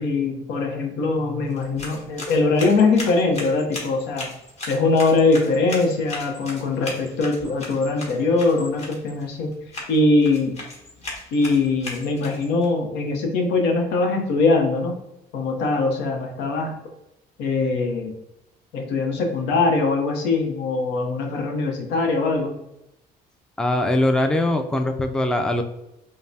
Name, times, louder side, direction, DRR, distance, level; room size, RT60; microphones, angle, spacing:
voice 1, 0.0-4.3 4.7-9.6 9.9-10.6 11.3-15.0 15.3-16.8 17.4-18.1 18.7-22.5, left 3 dB, 90° left, 3 dB, 0.7 m, -22 dB
sound 1, 1.5-12.6, left 2 dB, 40° left, 1.3 m, -37 dB
voice 2, 23.6-25.6, left 1 dB, 5° left, 6 dB, 0.3 m, -21 dB
5.2 x 2.0 x 2.7 m, 0.87 s
cardioid pair, 110°, 17 cm